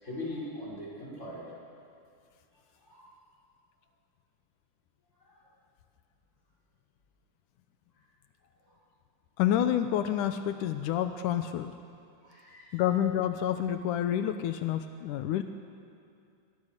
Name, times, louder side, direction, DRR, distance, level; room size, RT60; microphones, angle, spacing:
voice 1, 0.0-1.4 2.9-3.1 12.2-12.8, left 1 dB, 20° left, -5 dB, 6.5 m, -40 dB
voice 2, 9.4-11.7 12.7-15.4, left 10 dB, 85° left, 8 dB, 2.3 m, -28 dB
27.5 x 22.5 x 6.6 m, 2.5 s
omnidirectional pair, 3.6 m